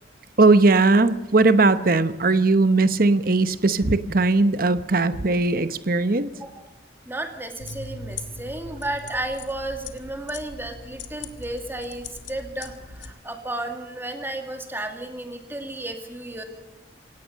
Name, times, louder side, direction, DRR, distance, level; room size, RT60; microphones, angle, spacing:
voice 1, 0.4-6.3, right 3 dB, 50° right, 12 dB, 1.0 m, -19 dB
voice 2, 6.4-6.7 7.1-16.4, right 1 dB, 10° right, 4 dB, 2.2 m, -33 dB
sound 1, 7.6-13.1, left 3 dB, 80° left, 1.7 m, -40 dB
27.5 x 17.5 x 6.5 m, 0.97 s
head